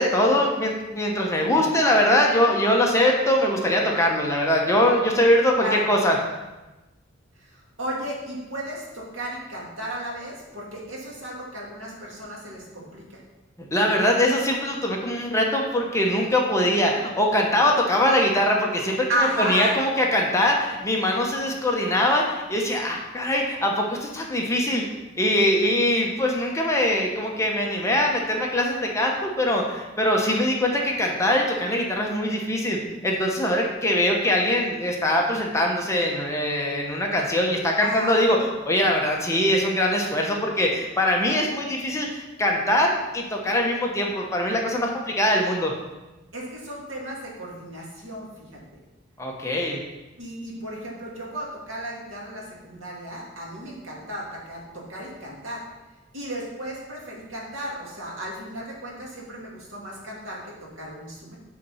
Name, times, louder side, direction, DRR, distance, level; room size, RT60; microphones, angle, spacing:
voice 1, 0.0-6.2 13.7-32.8 33.0-38.4 38.6-45.7 49.2-49.8, left 1 dB, 15° left, 0 dB, 1.0 m, -22 dB
voice 2, 7.4-13.2 19.1-19.7 37.8-38.2 46.3-48.8 50.2-55.6 56.1-61.4, right 1 dB, 85° right, -3 dB, 2.3 m, -33 dB
8.3 x 4.3 x 5.6 m, 1.1 s
head